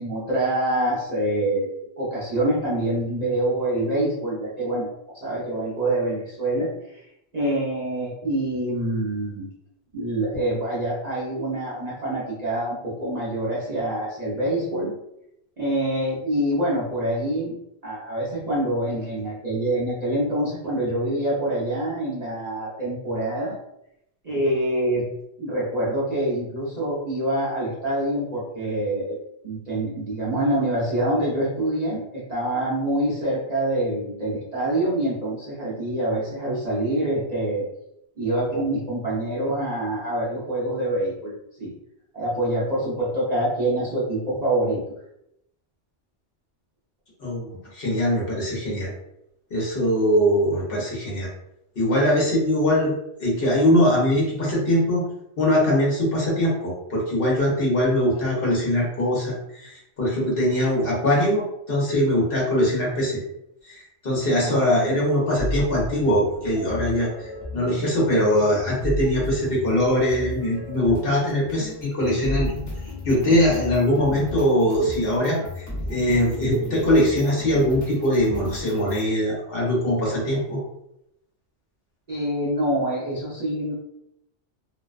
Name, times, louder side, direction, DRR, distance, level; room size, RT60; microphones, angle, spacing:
voice 1, 0.0-4.9 5.1-7.0 7.3-9.5 9.9-14.9 15.6-17.5 17.8-23.5 24.2-25.1 25.4-29.2 29.4-37.7 38.2-41.3 41.6-41.7 42.1-44.8 52.0-52.1 64.4-64.8 82.1-83.7, right 1 dB, 40° right, -8 dB, 0.7 m, -25 dB
voice 2, 47.2-48.9 49.5-51.3 51.8-52.9 53.2-55.0 55.4-61.4 61.7-63.2 63.6-72.5 73.0-80.6, equal, 55° left, -4 dB, 0.9 m, -22 dB
sound 1, 65.4-79.1, left 1 dB, 20° left, 0.6 m, -34 dB
2.5 x 2.1 x 2.4 m, 0.80 s
omnidirectional pair, 1.2 m